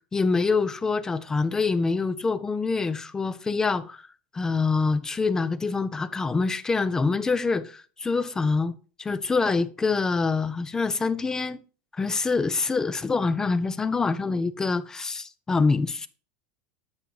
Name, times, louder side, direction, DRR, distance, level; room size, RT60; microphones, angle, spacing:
voice 1, 0.1-4.0 4.3-8.7 9.0-11.6 11.9-16.1, left 4 dB, 10° left, 0.3 m, -25 dB
7.9 x 5.5 x 2.9 m
supercardioid pair, 140°, 5 cm